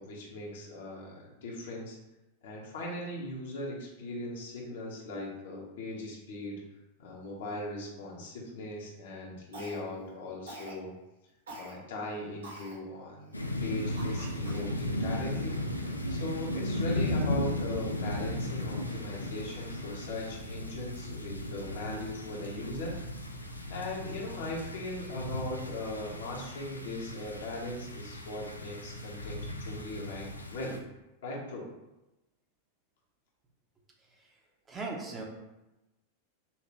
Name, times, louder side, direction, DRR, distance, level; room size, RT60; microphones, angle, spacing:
voice 1, 0.0-2.0 2.4-6.6 7.0-10.9 11.6-22.9 23.7-30.8 31.2-31.7, left 2 dB, 60° left, -3 dB, 1.2 m, -39 dB
Cough, 9.5-10.0 10.5-10.8 11.5-11.7 12.4-12.8 13.3-13.4 14.0-14.7, right 1 dB, 70° right, 1.2 m, -45 dB
sound 1, 13.3-30.8, left 1 dB, 85° left, 0.5 m, -36 dB
voice 2, 34.7-35.2, right 3 dB, 20° right, -1 dB, 1.0 m, -37 dB
5.7 x 2.8 x 3.0 m, 0.98 s
figure-of-eight pair, 90°, 0 cm